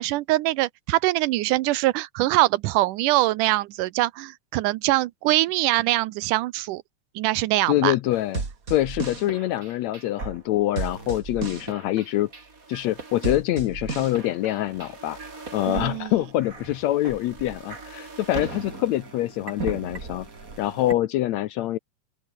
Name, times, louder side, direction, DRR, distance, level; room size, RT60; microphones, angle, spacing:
voice 1, 0.0-6.8 7.2-8.0 15.7-16.1, right 17 dB, 80° right, 2.2 m, -23 dB
voice 2, 7.7-8.4 8.7-12.3 12.7-20.3 20.6-21.8, left 14 dB, 75° left, 1.7 m, -25 dB
sound 1, 8.1-20.9, right 4 dB, 25° right, 3.0 m, -36 dB
open air
omnidirectional pair, 3.8 m